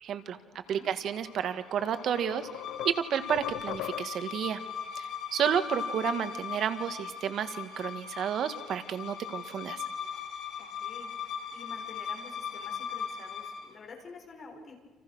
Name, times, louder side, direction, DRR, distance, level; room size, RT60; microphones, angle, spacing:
voice 1, 0.0-0.4 0.7-2.5 2.8-4.6 5.0-9.8, right 9 dB, 55° right, 10 dB, 1.9 m, -31 dB
voice 2, 0.5-0.9 5.4-5.6 10.6-11.1 11.5-14.7, left 4 dB, 40° left, 2 dB, 7.0 m, -49 dB
sound 1, 1.0-13.7, left 7 dB, 60° left, 5.1 m, -39 dB
sound 2, 1.2-1.3 1.8-4.4, left 13 dB, 90° left, 0.9 m, -40 dB
29.5 x 28.5 x 6.4 m, 1.3 s
cardioid pair, 125°, 0 cm